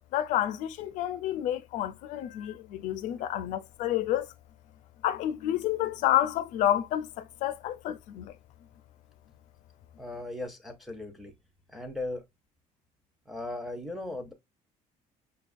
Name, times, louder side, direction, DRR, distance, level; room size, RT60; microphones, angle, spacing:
voice 1, 0.1-4.3 5.0-8.3, left 12 dB, 65° left, 0.4 m, -29 dB
voice 2, 10.0-11.3 11.7-12.2 13.3-14.3, left 2 dB, ahead, 0.5 m, -37 dB
5.6 x 2.3 x 2.4 m
cardioid pair, 175°, 14 cm